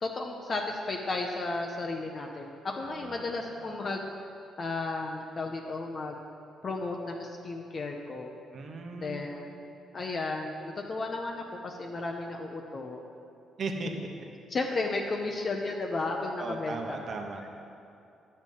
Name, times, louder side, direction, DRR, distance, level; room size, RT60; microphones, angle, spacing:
voice 1, 0.0-4.1 4.6-6.2 6.6-8.3 8.9-9.5 9.9-13.0 14.5-17.2, left 3 dB, 40° left, 1 dB, 0.7 m, -34 dB
voice 2, 2.8-3.2 3.6-3.8 8.5-9.3 13.6-13.9 16.4-17.5, right 4 dB, 50° right, 3 dB, 1.0 m, -37 dB
9.4 x 6.5 x 5.4 m, 2.7 s
cardioid pair, 90°, 0 cm